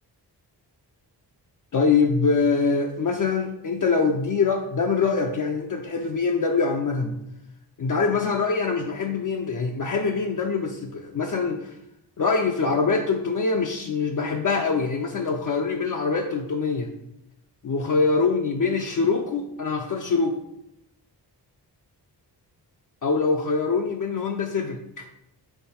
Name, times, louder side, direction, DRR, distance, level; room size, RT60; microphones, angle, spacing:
voice 1, 1.7-7.2 7.8-11.7 12.2-16.9 17.6-20.4 23.0-25.1, left 4 dB, 50° left, 3 dB, 0.5 m, -24 dB
5.7 x 3.8 x 4.2 m, 0.81 s
wide cardioid pair, 155°, 41 cm